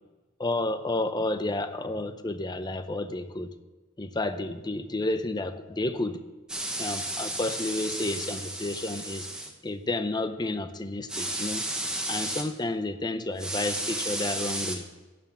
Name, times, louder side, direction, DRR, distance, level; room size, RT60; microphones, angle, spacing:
voice 1, 0.4-3.5 4.0-6.2 6.8-9.3 9.6-11.6 12.1-14.9, left 2 dB, 20° left, 10 dB, 0.6 m, -31 dB
sound 1, 6.5-9.5 11.1-12.4 13.4-14.8, right 1 dB, 5° right, 1.1 m, -33 dB
11.0 x 6.9 x 7.3 m, 1.2 s
head